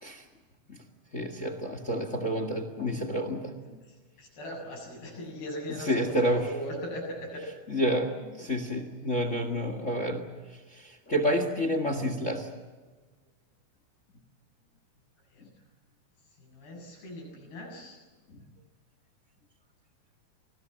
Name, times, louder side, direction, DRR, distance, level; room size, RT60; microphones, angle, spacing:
voice 1, 1.1-3.8 5.8-6.5 7.7-10.3 10.7-12.5 18.3-18.4, equal, 35° left, 8 dB, 1.1 m, -29 dB
voice 2, 3.9-7.4 15.3-15.4 16.4-18.0, equal, 85° left, 0 dB, 9.3 m, -39 dB
27.5 x 20.5 x 7.6 m, 1.3 s
omnidirectional pair, 4.4 m